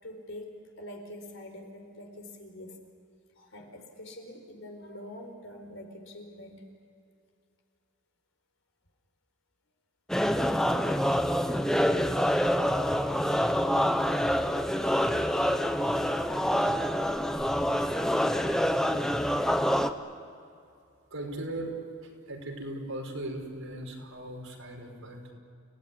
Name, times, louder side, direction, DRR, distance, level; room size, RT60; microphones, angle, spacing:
voice 1, 0.0-2.8 3.4-6.7, left 1 dB, 65° left, 3 dB, 4.8 m, -45 dB
sound 1, 10.1-19.9, equal, ahead, 0.9 m, -26 dB
voice 2, 21.1-25.3, right 1 dB, 75° right, 1 dB, 5.5 m, -38 dB
30.0 x 18.0 x 9.8 m, 2.5 s
head